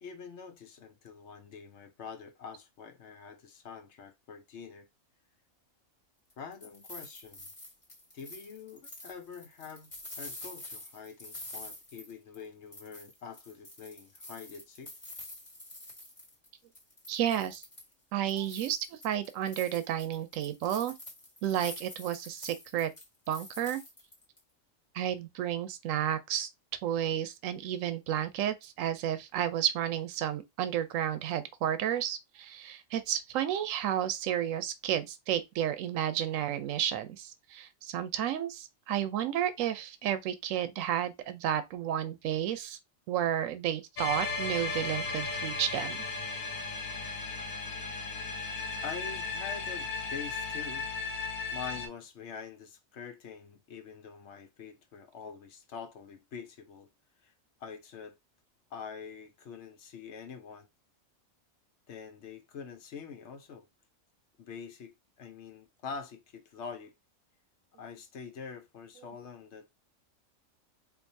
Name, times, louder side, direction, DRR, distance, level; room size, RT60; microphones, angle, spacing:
voice 1, 0.0-4.9 6.4-7.4 8.1-9.9 10.2-14.9 48.8-50.9 51.5-56.9 57.2-57.3 57.6-58.2 58.7-60.7 61.9-63.7 64.4-66.9 67.8-69.7, left 6 dB, 65° left, 0.9 m, -45 dB
sound 1, 6.3-12.4 12.7-16.5 16.7-17.9 18.3-24.4, left 1 dB, 25° left, 1.4 m, -47 dB
voice 2, 17.1-17.6 18.1-20.9 21.4-22.9 23.3-23.8 24.9-26.5 26.8-42.8 43.1-46.0, right 10 dB, 80° right, 1.0 m, -32 dB
sound 2, 44.0-51.9, left 3 dB, 85° left, 1.2 m, -35 dB
4.5 x 2.7 x 2.6 m
omnidirectional pair, 1.4 m